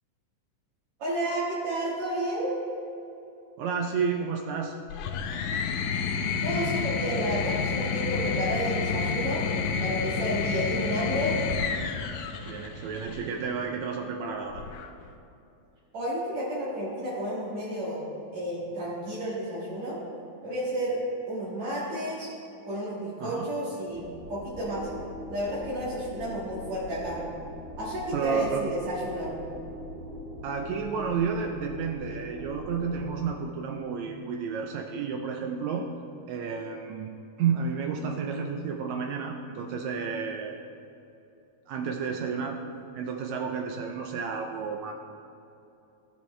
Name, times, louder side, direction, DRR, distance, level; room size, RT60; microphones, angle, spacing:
voice 1, 1.0-2.5 6.4-9.4 9.8-11.4 15.9-18.0 18.3-20.0 20.4-21.0 21.3-22.3 22.6-24.0 24.3-24.9 25.3-27.2 27.8-29.3, right 1 dB, 60° right, -9 dB, 2.9 m, -31 dB
voice 2, 3.6-4.8 12.5-14.6 23.2-23.4 28.1-28.6 30.4-35.9 36.3-37.1 37.4-40.6 41.7-42.6 42.9-44.9, right 6 dB, 80° right, 3 dB, 1.7 m, -31 dB
sound 1, 4.9-13.3 14.5-15.1, left 5 dB, 80° left, 2.0 m, -30 dB
sound 2, 23.8-33.2, left 1 dB, ahead, 1.8 m, -42 dB
15.0 x 7.3 x 3.2 m, 2.8 s
omnidirectional pair, 3.7 m